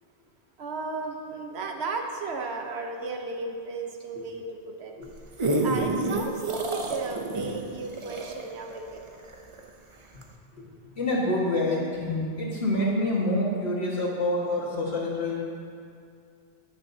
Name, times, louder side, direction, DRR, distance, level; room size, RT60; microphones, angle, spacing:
voice 1, 0.6-4.9 5.6-9.1, right 3 dB, 90° right, 3 dB, 1.2 m, -34 dB
sound 1, 5.0-9.7 10.2-10.3, right 2 dB, 35° right, 0.6 m, -29 dB
voice 2, 10.6-15.4, left 1 dB, 85° left, -5 dB, 2.0 m, -27 dB
17.0 x 6.3 x 2.8 m, 2.3 s
omnidirectional pair, 1.0 m